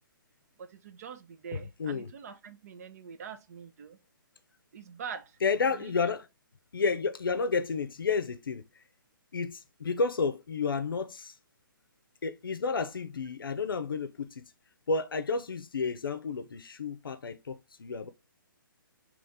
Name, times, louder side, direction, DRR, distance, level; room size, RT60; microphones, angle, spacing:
voice 1, 0.6-4.0 4.7-5.4 5.7-5.9, right 7 dB, 45° right, 0.5 m, -44 dB
voice 2, 5.4-6.3 6.7-8.6 9.3-11.3 12.2-14.5 14.9-18.1, left 4 dB, 80° left, 0.5 m, -31 dB
4.1 x 3.0 x 3.5 m
hypercardioid pair, 140°, 12 cm